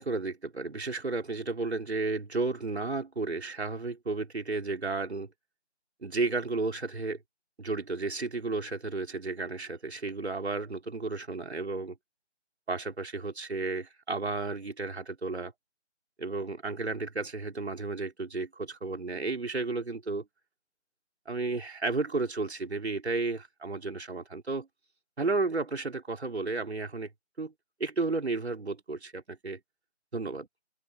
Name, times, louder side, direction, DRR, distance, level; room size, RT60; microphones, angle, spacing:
voice 1, 0.0-5.3 6.0-7.2 7.6-11.9 12.7-15.5 16.2-20.2 21.3-24.7 25.2-27.1 27.4-27.5 27.8-29.6 30.1-30.5, right 3 dB, 65° right, 4.5 m, -33 dB
open air
figure-of-eight pair, 160°, 36 cm